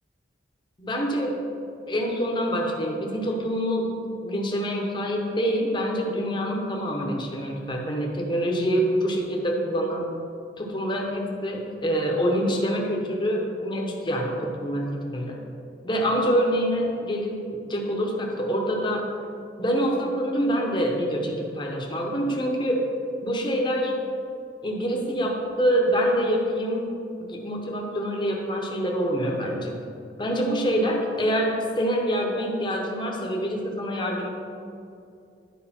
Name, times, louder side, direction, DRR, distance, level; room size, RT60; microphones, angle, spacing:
voice 1, 0.8-1.4 1.9-10.1 10.6-15.4 15.8-19.1 19.6-22.9 23.2-23.9 24.6-29.8 30.2-34.3, equal, 25° left, 0 dB, 1.0 m, -26 dB
10.0 x 5.0 x 4.4 m, 2.5 s
head